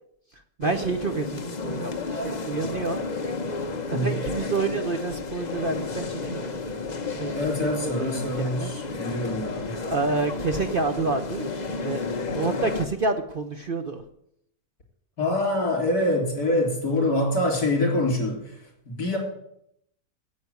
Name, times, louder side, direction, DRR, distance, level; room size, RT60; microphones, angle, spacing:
voice 1, 0.3-3.1 3.9-6.6 7.2-7.5 7.8-8.7 9.8-12.0 12.3-14.0, right 3 dB, 45° right, 7 dB, 0.8 m, -29 dB
sound 1, 0.6-12.9, left 4 dB, 35° left, 0.9 m, -32 dB
voice 2, 7.3-9.8 15.2-18.6 18.9-19.2, left 1 dB, 75° left, 1 dB, 4.3 m, -25 dB
9.6 x 8.4 x 9.4 m, 0.74 s
omnidirectional pair, 1.6 m